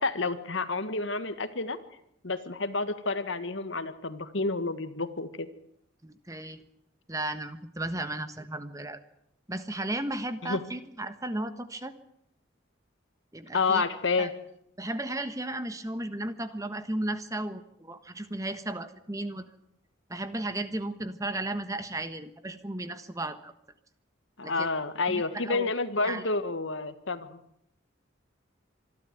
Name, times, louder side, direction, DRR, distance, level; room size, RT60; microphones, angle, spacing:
voice 1, 0.0-1.8 2.2-5.5 10.4-10.6 13.5-14.3 24.4-27.4, left 3 dB, 75° left, 11 dB, 1.7 m, -29 dB
voice 2, 6.0-6.6 7.1-9.0 9.5-11.9 13.3-13.8 14.2-14.3 14.8-19.5 20.1-23.5 24.4-24.7 25.1-25.7 26.0-26.2, right 1 dB, 15° right, 10 dB, 1.3 m, -34 dB
25.5 x 12.5 x 9.3 m, 0.75 s
head